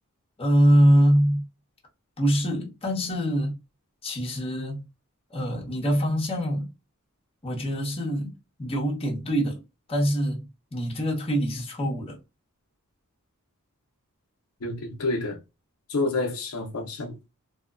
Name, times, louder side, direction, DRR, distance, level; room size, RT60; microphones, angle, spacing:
voice 1, 0.4-1.4 2.2-3.6 4.0-4.9 5.3-6.7 7.4-8.3 8.6-9.6 9.9-12.2, equal, 25° left, 0.9 m, -24 dB
voice 2, 14.6-15.4 15.9-17.2, left 2 dB, 70° left, 0.6 m, -28 dB
2.7 x 2.1 x 2.4 m
head